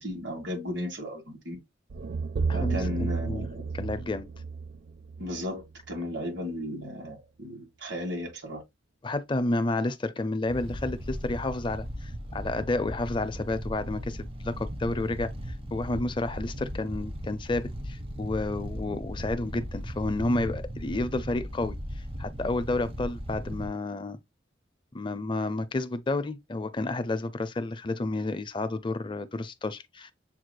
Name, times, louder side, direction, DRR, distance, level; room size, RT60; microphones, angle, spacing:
voice 1, 0.0-1.6 2.5-3.6 5.2-8.6, left 1 dB, 75° right, 2.2 m, -35 dB
sound 1, 1.9-6.0, right 4 dB, 55° right, 0.4 m, -32 dB
voice 2, 2.5-3.4 3.7-4.2 9.0-15.3 15.7-24.2 24.9-30.1, left 2 dB, 25° left, 0.5 m, -31 dB
sound 2, 10.5-23.7, equal, 30° right, 0.7 m, -37 dB
7.3 x 3.1 x 2.2 m
head